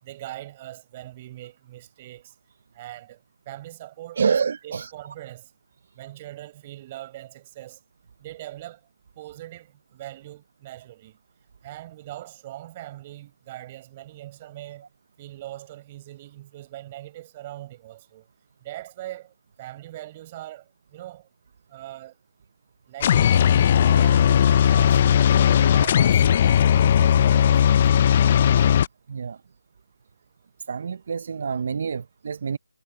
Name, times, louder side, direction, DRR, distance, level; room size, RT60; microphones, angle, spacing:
voice 1, 0.0-2.3 2.7-3.2 3.4-4.3 4.6-5.5 5.9-7.8 8.2-8.8 9.2-11.2 11.6-14.8 15.2-18.3 18.6-21.3 21.7-22.2 22.9-26.2 26.6-28.1, right 15 dB, 20° right, 4.9 m, -41 dB
voice 2, 4.2-4.9 29.1-29.4 30.7-32.6, right 6 dB, 40° right, 0.6 m, -27 dB
sound 1, 23.0-28.9, left 9 dB, 30° left, 0.5 m, -17 dB
figure-of-eight pair, 165°, 0 cm